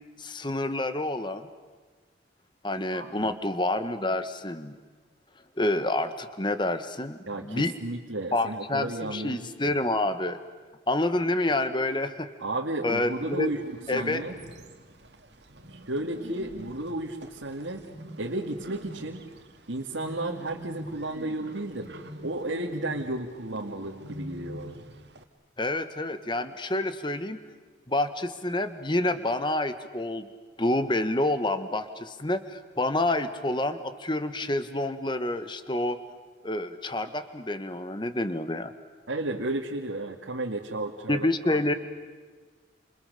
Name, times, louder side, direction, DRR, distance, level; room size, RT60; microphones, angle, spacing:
voice 1, 0.2-1.5 2.6-4.7 5.6-7.7 8.3-10.4 10.9-12.3 12.8-13.5 13.9-14.2 25.6-27.4 27.9-30.3 30.6-36.0 36.4-38.7 41.1-41.7, left 1 dB, 25° left, 10 dB, 1.4 m, -28 dB
voice 2, 2.9-3.3 7.3-9.7 12.4-13.6 13.9-14.4 15.7-17.9 18.2-19.2 19.7-24.8 39.1-41.6, right 2 dB, 85° right, -1 dB, 2.1 m, -33 dB
Bird, 13.1-25.2, equal, 60° right, 2.1 m, -45 dB
29.0 x 27.5 x 6.8 m, 1.4 s
head